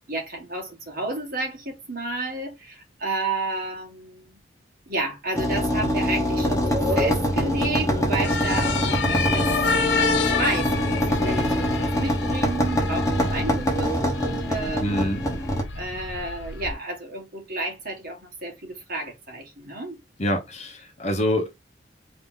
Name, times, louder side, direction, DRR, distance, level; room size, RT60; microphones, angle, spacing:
voice 1, 0.1-4.4 4.9-9.5 9.8-14.9 15.8-20.0, right 2 dB, 55° right, 1.7 m, -31 dB
sound 1, 5.3-15.6, equal, 20° left, 1.1 m, -24 dB
sound 2, 8.2-16.7, left 5 dB, 75° left, 0.6 m, -29 dB
voice 2, 14.8-15.2 20.2-21.5, equal, 40° left, 1.0 m, -25 dB
3.6 x 2.8 x 3.9 m
head